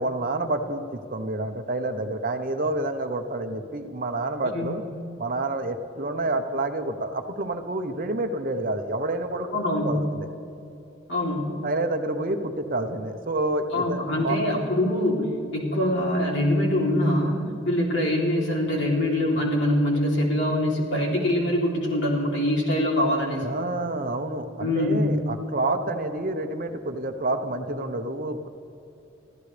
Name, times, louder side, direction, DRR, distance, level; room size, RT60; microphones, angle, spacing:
voice 1, 0.0-4.8 5.2-9.5 9.8-10.3 11.6-14.4 23.4-28.5, right 2 dB, 45° right, 7 dB, 0.9 m, -28 dB
voice 2, 9.5-10.0 11.1-11.5 13.7-15.2 15.5-23.4 24.6-25.1, left 1 dB, 65° left, -2 dB, 3.2 m, -24 dB
24.5 x 15.0 x 3.4 m, 2.8 s
head